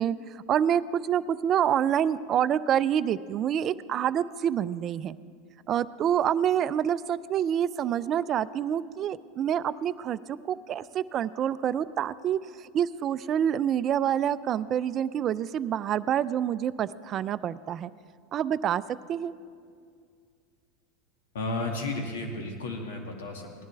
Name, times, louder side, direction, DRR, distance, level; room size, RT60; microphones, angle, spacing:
voice 1, 0.0-5.1 5.7-17.9 18.3-18.8 19.1-19.3, right 9 dB, 40° right, 16 dB, 0.4 m, -27 dB
voice 2, 21.3-23.6, left 2 dB, 80° left, 2 dB, 2.0 m, -33 dB
18.5 x 11.0 x 3.4 m, 2.2 s
hypercardioid pair, 100°, 0 cm